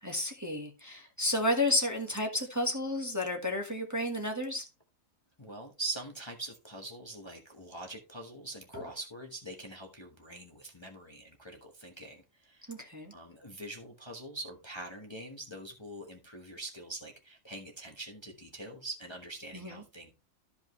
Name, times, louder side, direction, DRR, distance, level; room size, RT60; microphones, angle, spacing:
voice 1, 0.0-4.6 8.7-8.8 12.7-13.1 19.5-19.8, left 1 dB, 15° right, 1.4 m, -32 dB
voice 2, 5.4-12.7 13.1-20.1, right 2 dB, 20° left, 1.2 m, -43 dB
13.0 x 5.3 x 3.1 m
omnidirectional pair, 1.5 m